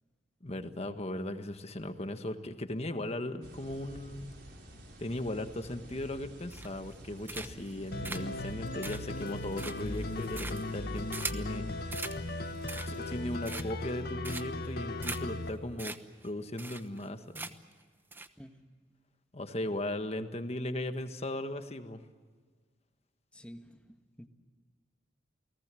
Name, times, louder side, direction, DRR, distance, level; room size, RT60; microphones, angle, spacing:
voice 1, 0.4-4.3 5.0-11.7 12.9-15.9 16.2-17.5 19.3-22.0, left 1 dB, 35° left, 8 dB, 1.5 m, -37 dB
sound 1, 3.4-13.4, equal, 65° right, 5.2 m, -50 dB
sound 2, 6.5-6.9 7.3-7.7 8.0-11.5 11.9-12.2 12.5-13.1 13.4-13.9 14.2-14.7 15.0-15.2 15.5-15.6 15.8-16.0 16.2-16.3 16.6-17.1 17.3-17.7 18.1-18.3, right 3 dB, 10° right, 1.0 m, -41 dB
sound 3, 7.9-15.5, left 2 dB, 55° left, 1.4 m, -37 dB
voice 2, 23.3-24.3, equal, 5° left, 6 dB, 1.4 m, -50 dB
29.5 x 19.0 x 7.7 m, 1.5 s
head